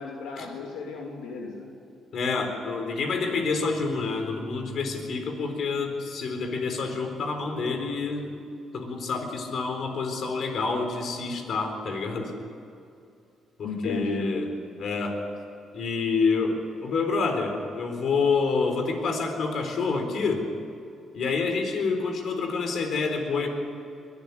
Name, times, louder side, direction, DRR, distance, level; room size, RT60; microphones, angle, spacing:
voice 1, 0.0-1.7 13.6-14.4, left 4 dB, 90° left, -1 dB, 2.8 m, -34 dB
voice 2, 2.1-8.3 8.7-12.3 13.6-14.5 14.8-15.2 15.7-20.5 21.1-23.5, left 4 dB, 65° left, 5 dB, 4.0 m, -28 dB
22.0 x 13.0 x 9.9 m, 2.6 s
cardioid pair, 90°, 0 cm